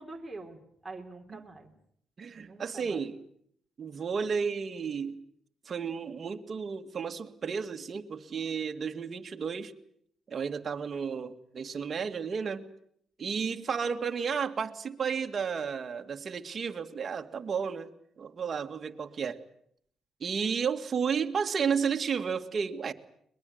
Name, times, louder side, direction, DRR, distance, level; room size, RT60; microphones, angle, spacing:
voice 1, 0.0-1.7 2.3-3.0, right 2 dB, 10° right, 0 dB, 3.8 m, -45 dB
voice 2, 2.2-3.2 3.8-5.2 5.7-9.7 10.3-12.6 13.2-19.4 20.2-22.9, right 6 dB, 45° right, 5 dB, 2.1 m, -32 dB
22.0 x 21.5 x 9.4 m, 0.69 s
cardioid pair, 90°, 0 cm